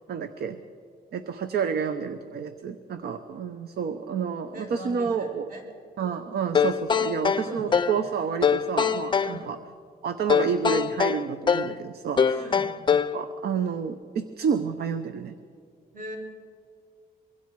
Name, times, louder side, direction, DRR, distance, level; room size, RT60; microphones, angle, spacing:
voice 1, 0.1-0.6 1.1-5.5 6.0-9.6 10.0-12.4 13.1-15.3, right 6 dB, 75° right, 9 dB, 0.9 m, -29 dB
voice 2, 4.5-5.6 7.2-7.8 9.2-9.5 12.3-12.7 15.9-16.2, equal, 60° right, 0 dB, 4.7 m, -40 dB
sound 1, 6.5-8.0 8.4-9.4 10.3-11.8 12.2-13.2, left 7 dB, 30° left, 0.5 m, -23 dB
24.5 x 23.0 x 4.7 m, 2.2 s
wide cardioid pair, 170°, 17 cm